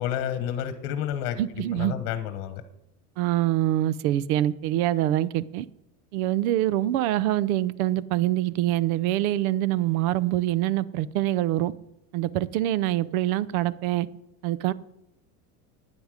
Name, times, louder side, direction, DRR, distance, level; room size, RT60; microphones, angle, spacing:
voice 1, 0.0-2.6, left 10 dB, 55° left, 1.3 m, -30 dB
voice 2, 1.4-1.9 3.2-5.7 6.1-11.7 12.1-14.1 14.4-14.7, right 14 dB, 70° right, 0.8 m, -25 dB
11.5 x 9.9 x 5.0 m
supercardioid pair, 145°, 44 cm